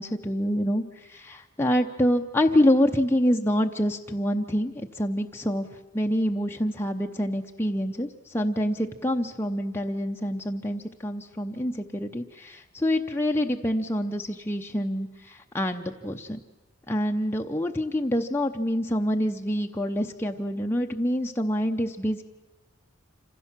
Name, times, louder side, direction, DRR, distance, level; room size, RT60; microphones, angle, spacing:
voice 1, 0.0-16.4 16.9-22.2, equal, 10° left, 2 dB, 0.7 m, -26 dB
26.5 x 15.5 x 7.4 m, 1.1 s
head